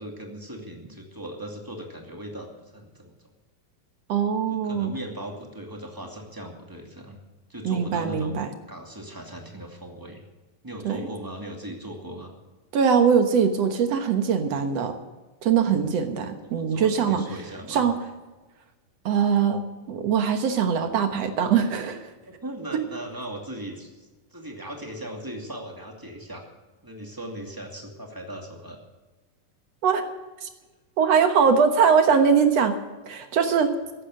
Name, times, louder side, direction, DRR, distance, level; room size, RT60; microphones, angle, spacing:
voice 1, 0.0-3.2 4.5-7.2 7.5-10.2 10.6-12.3 15.6-15.9 16.4-17.9 22.3-26.4 26.8-28.8, right 1 dB, 5° right, 1 dB, 1.8 m, -38 dB
voice 2, 4.1-4.9 7.6-8.5 10.8-11.0 12.7-15.0 15.4-17.2 17.7-18.0 19.1-19.6 19.9-22.1 22.7-22.8 29.8-30.1 30.4-30.5 31.0-32.8 33.1-33.7, right 6 dB, 60° right, 7 dB, 2.0 m, -22 dB
15.5 x 11.5 x 6.5 m, 1.2 s
omnidirectional pair, 3.9 m